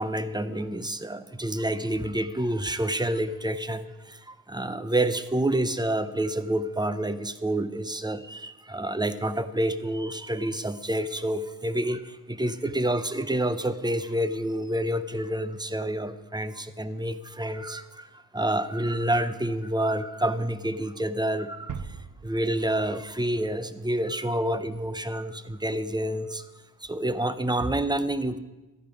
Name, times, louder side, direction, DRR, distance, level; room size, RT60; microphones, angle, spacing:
voice 1, 0.0-22.0 22.2-26.5 26.8-28.4, right 1 dB, 10° right, 12 dB, 0.6 m, -28 dB
sound 1, 21.7-24.4, right 6 dB, 65° right, 0.7 m, -42 dB
13.0 x 10.5 x 5.2 m, 1.1 s
wide cardioid pair, 100°, 34 cm